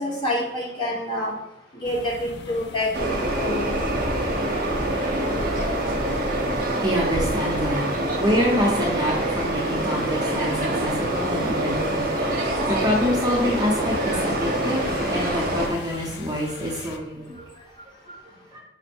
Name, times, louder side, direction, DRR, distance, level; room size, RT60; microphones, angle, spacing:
voice 1, 0.0-1.3 1.7-3.7, left 1 dB, 25° left, -4 dB, 1.2 m, -27 dB
sound 1, 1.8-17.0, left 3 dB, 70° left, 0.4 m, -41 dB
sound 2, 2.9-15.7, right 1 dB, 55° right, 0.8 m, -25 dB
voice 2, 4.0-6.0 6.8-7.8 8.1-17.4 18.5-18.6, left 1 dB, 20° right, -3 dB, 0.7 m, -27 dB
5.2 x 2.1 x 4.3 m, 0.80 s
head